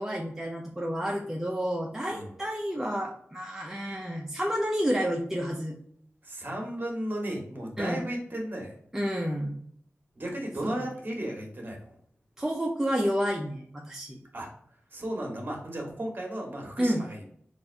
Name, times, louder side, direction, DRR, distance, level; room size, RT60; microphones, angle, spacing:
voice 1, 0.0-5.8 7.8-8.0 8.9-9.5 10.6-10.8 12.4-14.2 16.8-17.0, equal, 10° right, 0 dB, 0.6 m, -30 dB
voice 2, 6.2-8.8 10.2-12.0 14.3-14.5 14.9-17.2, right 1 dB, 40° right, 0 dB, 1.4 m, -35 dB
4.0 x 2.5 x 4.4 m, 0.63 s
wide cardioid pair, 95°, 5 cm